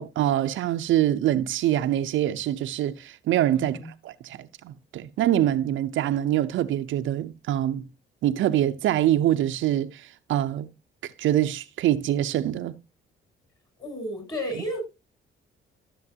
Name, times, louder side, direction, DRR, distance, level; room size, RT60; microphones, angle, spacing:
voice 1, 0.0-7.8 8.2-10.7 11.0-12.7, right 12 dB, 80° right, 0.7 m, -25 dB
voice 2, 13.8-14.8, equal, 20° left, 6.7 m, -32 dB
13.5 x 7.1 x 2.8 m
cardioid pair, 90°, 20 cm